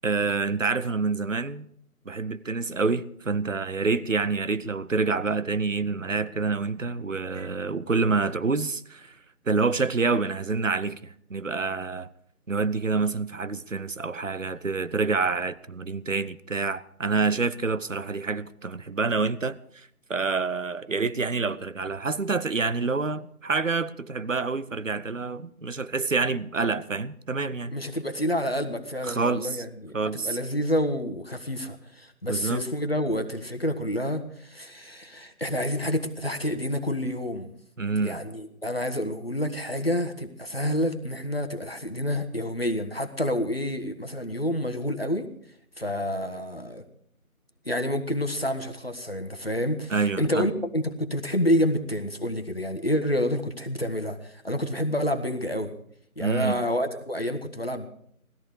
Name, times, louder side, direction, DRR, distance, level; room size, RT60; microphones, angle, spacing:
voice 1, 0.0-1.7 2.1-9.2 9.5-12.1 12.5-27.7 29.0-29.6 29.9-30.4 32.3-32.6 37.8-38.2 49.9-50.5 56.2-56.6, right 4 dB, 60° right, 0.8 m, -27 dB
voice 2, 27.7-37.5 38.0-45.3 45.8-46.8 47.6-55.7 56.2-57.9, equal, 45° left, 1.4 m, -28 dB
19.5 x 14.0 x 4.8 m
figure-of-eight pair, 175°, 43 cm